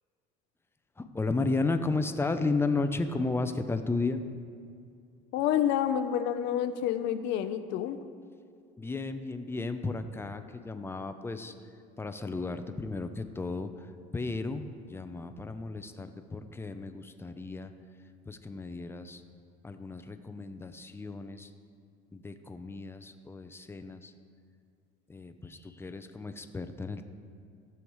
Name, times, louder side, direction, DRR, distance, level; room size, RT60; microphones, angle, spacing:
voice 1, 1.0-4.2 8.8-11.5 12.0-17.7 18.3-19.2 19.6-21.5 22.1-24.1 25.1-27.1, left 3 dB, 10° left, 8 dB, 0.6 m, -34 dB
voice 2, 5.3-8.0, left 10 dB, 70° left, 10 dB, 0.7 m, -28 dB
15.0 x 7.1 x 3.1 m, 2.3 s
supercardioid pair, 105°, 19 cm